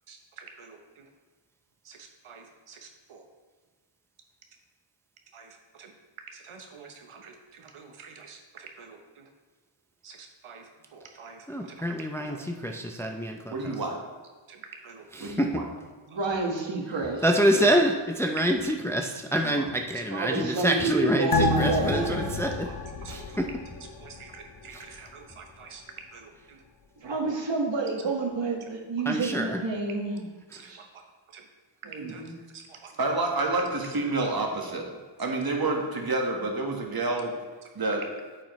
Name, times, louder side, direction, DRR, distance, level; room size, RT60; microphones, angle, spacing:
voice 1, 0.1-1.1 1.8-3.3 5.3-5.9 6.3-9.3 10.0-11.8 14.5-15.4 16.1-16.3 22.7-22.8 23.0-23.4 24.0-26.6 30.5-30.8 31.3-31.4 32.1-32.2 32.5-32.9 35.3-35.4, right 5 dB, 90° right, 3 dB, 0.9 m, -48 dB
voice 2, 11.5-13.8 15.1-15.6 17.2-22.7 23.1-23.5 24.7-24.8 29.1-29.6, equal, 5° left, 3 dB, 0.5 m, -26 dB
voice 3, 13.5-14.0 15.2-15.6 19.4-19.6 32.0-32.1 33.0-34.8 35.2-37.3 37.7-38.0, right 2 dB, 45° right, 1 dB, 1.5 m, -28 dB
voice 4, 16.1-17.2 17.5-17.6 20.1-22.2 27.0-30.3 30.6-30.9 31.8-32.3, right 3 dB, 65° right, 1 dB, 1.6 m, -29 dB
sound 1, 21.3-24.2 24.6-24.7, left 3 dB, 50° left, 0.7 m, -29 dB
8.9 x 7.5 x 3.1 m, 1.4 s
wide cardioid pair, 95°, 48 cm